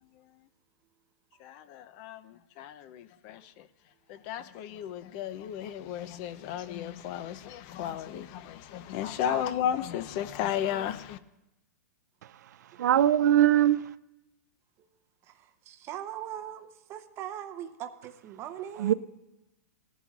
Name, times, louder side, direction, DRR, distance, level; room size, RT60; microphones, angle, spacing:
voice 1, 1.4-3.7 4.1-11.2, left 10 dB, 35° left, 0.5 m, -34 dB
voice 2, 12.8-13.9 18.8-18.9, right 11 dB, 70° right, 0.4 m, -21 dB
voice 3, 15.2-18.9, right 11 dB, 25° right, 0.7 m, -40 dB
18.0 x 11.0 x 2.4 m
hypercardioid pair, 145°, 10 cm